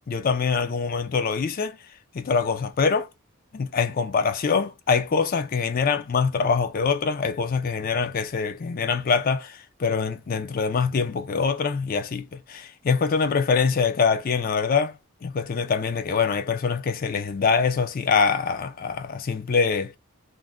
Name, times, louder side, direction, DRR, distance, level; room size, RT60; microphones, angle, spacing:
voice 1, 0.1-1.8 2.1-3.1 3.5-15.0 15.2-20.0, left 5 dB, 40° left, 0.3 m, -24 dB
2.5 x 2.1 x 3.4 m
head